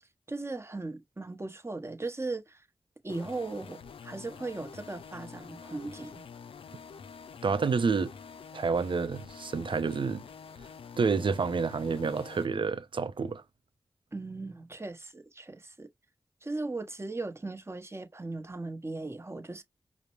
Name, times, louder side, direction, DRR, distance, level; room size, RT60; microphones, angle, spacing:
voice 1, 0.3-2.7 3.0-6.2 14.1-15.9 16.4-19.6, right 3 dB, 30° right, 0.9 m, -38 dB
sound 1, 3.1-12.5, left 6 dB, 90° left, 0.4 m, -47 dB
voice 2, 7.4-8.1 8.5-10.2 11.0-13.4, right 5 dB, 70° right, 0.6 m, -29 dB
5.0 x 2.1 x 3.0 m
cardioid pair, 45°, 9 cm